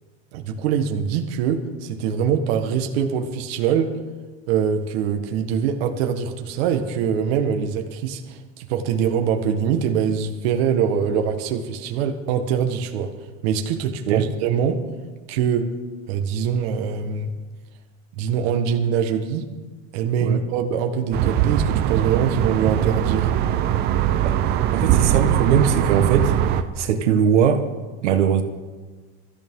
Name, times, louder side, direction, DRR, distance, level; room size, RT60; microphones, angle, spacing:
voice 1, 0.3-4.0 4.5-13.1 13.4-14.8 15.3-15.7 16.1-17.3 18.1-19.5 19.9-23.3, right 7 dB, 60° right, 5 dB, 1.4 m, -23 dB
sound 1, 21.1-26.6, right 11 dB, 30° right, 0.6 m, -21 dB
voice 2, 24.2-27.6 28.0-28.4, right 8 dB, 80° right, 6 dB, 1.5 m, -21 dB
23.0 x 14.0 x 3.7 m, 1.3 s
supercardioid pair, 165°, 35 cm